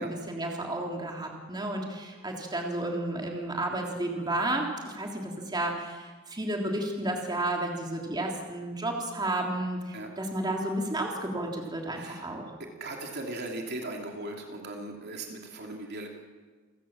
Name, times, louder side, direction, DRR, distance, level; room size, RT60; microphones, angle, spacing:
voice 1, 0.0-12.5, right 1 dB, 20° right, 0 dB, 3.4 m, -32 dB
voice 2, 12.6-16.1, right 2 dB, 50° right, 1 dB, 3.0 m, -38 dB
29.0 x 17.0 x 7.4 m, 1.4 s
head